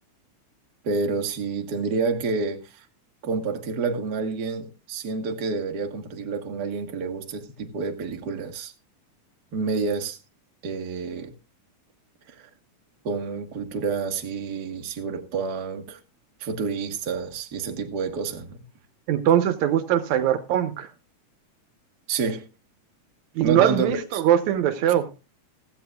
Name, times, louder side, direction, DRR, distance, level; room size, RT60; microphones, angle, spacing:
voice 1, 0.8-2.8 3.2-8.7 9.5-10.2 10.6-11.3 12.3-12.5 13.0-16.0 16.4-18.6 22.1-22.5 23.4-24.2, right 4 dB, 45° right, 1.5 m, -29 dB
voice 2, 19.1-20.9 23.4-25.1, right 10 dB, 75° right, 2.1 m, -21 dB
16.0 x 14.5 x 2.3 m
omnidirectional pair, 3.4 m